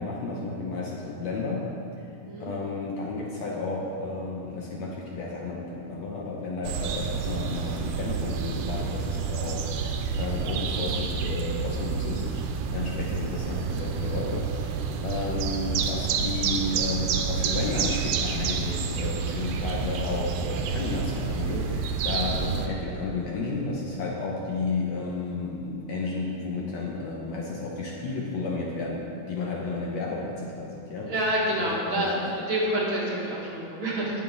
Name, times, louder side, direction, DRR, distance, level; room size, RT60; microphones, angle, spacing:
voice 1, 0.0-1.7 2.4-31.1 31.9-32.0, left 3 dB, 65° left, -2 dB, 1.9 m, -32 dB
sound 1, 6.6-22.7, right 5 dB, 80° right, 2.2 m, -29 dB
voice 2, 31.1-32.2 32.5-34.1, right 1 dB, 45° right, -6 dB, 2.3 m, -27 dB
19.5 x 7.2 x 3.9 m, 2.8 s
omnidirectional pair, 3.8 m